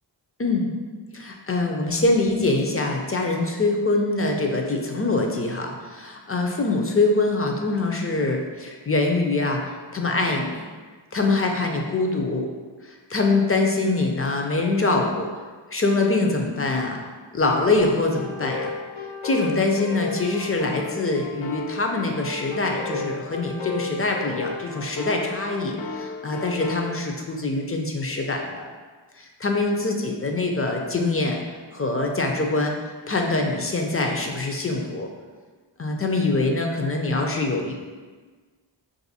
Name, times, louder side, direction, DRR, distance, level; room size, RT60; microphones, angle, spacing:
voice 1, 1.1-10.6 11.1-12.5 12.8-15.3 15.7-17.0 17.3-18.7 19.2-28.7 29.2-31.4 31.7-35.1 35.8-37.7, left 2 dB, 30° left, 2 dB, 0.4 m, -24 dB
sound 1, 18.1-26.9, left 3 dB, 85° left, 0.6 m, -34 dB
2.7 x 2.6 x 4.0 m, 1.4 s
wide cardioid pair, 50°, 46 cm